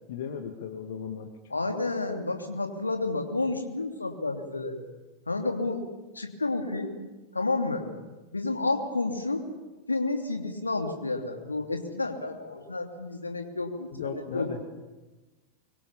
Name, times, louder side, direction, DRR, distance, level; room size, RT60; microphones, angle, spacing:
voice 1, 0.1-1.4 13.9-14.6, left 7 dB, 55° left, 6 dB, 2.1 m, -36 dB
voice 2, 1.5-4.8 5.3-5.8 6.1-6.9 7.3-7.9 8.3-9.4 9.9-14.5, left 3 dB, 80° left, 4 dB, 2.9 m, -30 dB
24.5 x 24.0 x 7.2 m, 1.2 s
figure-of-eight pair, 90°, 0 cm